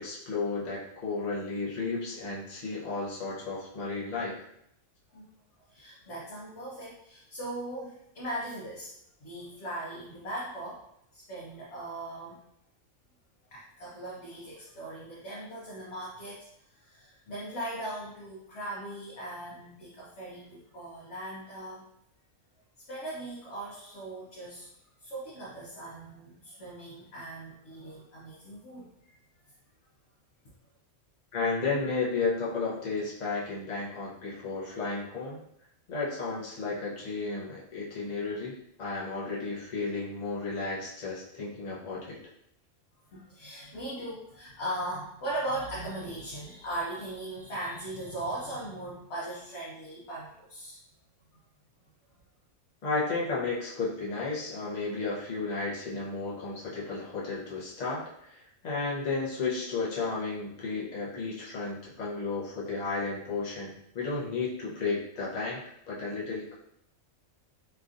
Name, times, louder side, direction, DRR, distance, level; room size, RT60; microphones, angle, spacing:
voice 1, 0.0-4.4 31.3-35.4 35.9-42.2 52.8-66.5, left 3 dB, 40° left, -5 dB, 0.7 m, -33 dB
voice 2, 5.7-8.9 9.2-10.8 11.1-12.4 13.5-21.8 22.9-24.7 25.0-29.2 43.1-50.8 51.3-51.4, right 1 dB, 65° left, -6 dB, 1.0 m, -39 dB
3.2 x 2.5 x 2.5 m, 0.76 s
omnidirectional pair, 1.3 m